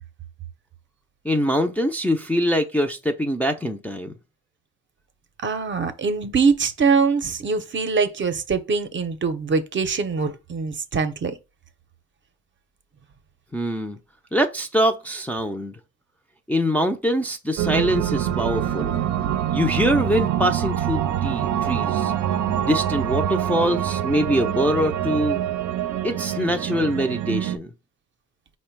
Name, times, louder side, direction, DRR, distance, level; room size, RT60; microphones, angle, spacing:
voice 1, 1.2-4.1 13.5-14.0 14.3-15.8 16.5-19.0 19.5-22.1 22.6-25.4 26.0-27.7, equal, 5° left, 0.4 m, -23 dB
voice 2, 5.4-11.3, right 5 dB, 40° right, 0.7 m, -23 dB
sound 1, 17.6-27.6, right 10 dB, 75° right, 0.5 m, -25 dB
4.9 x 2.2 x 4.5 m
cardioid pair, 90°, 30 cm